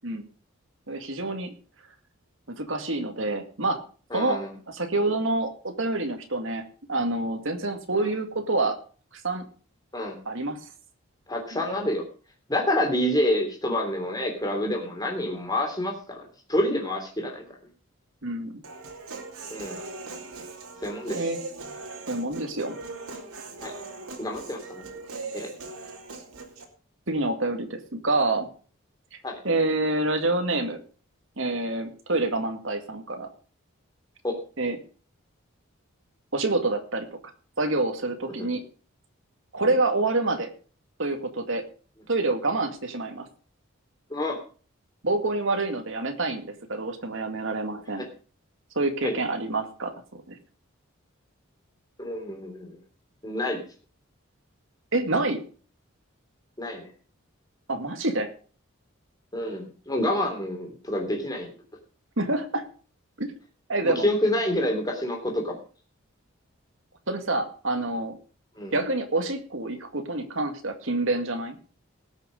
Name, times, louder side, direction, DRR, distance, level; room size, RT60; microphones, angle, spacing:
voice 1, 0.9-1.5 2.6-3.8 4.1-6.6 6.9-8.8 9.2-9.4 10.3-10.6 11.5-11.6 18.2-18.6 21.1-21.4 22.1-22.8 27.1-28.5 29.1-29.2 29.4-30.8 31.4-33.3 34.6-34.8 36.3-37.1 37.6-38.6 39.5-40.5 41.0-41.7 42.1-43.3 45.0-48.1 48.8-49.9 50.3-50.4 54.9-55.4 57.7-58.3 62.2-62.6 63.2-63.3 63.7-64.1 67.1-68.2 68.7-71.6, right 2 dB, 60° right, 6 dB, 2.1 m, -27 dB
voice 2, 4.1-4.5 7.9-8.1 9.9-10.2 11.3-12.0 12.5-17.4 19.5-19.8 20.8-21.3 23.6-23.7 24.2-24.8 25.3-25.5 29.2-29.4 34.2-34.3 38.4-38.5 39.6-39.7 44.1-44.4 48.0-48.1 49.0-49.1 52.0-52.8 53.2-53.6 56.6-56.9 59.3-61.5 63.8-65.6 68.6-68.7, left 1 dB, 15° left, 2 dB, 3.1 m, -28 dB
Human voice, 18.6-26.6, right 3 dB, 85° right, 2.7 m, -40 dB
19.0 x 6.6 x 5.1 m, 0.39 s
head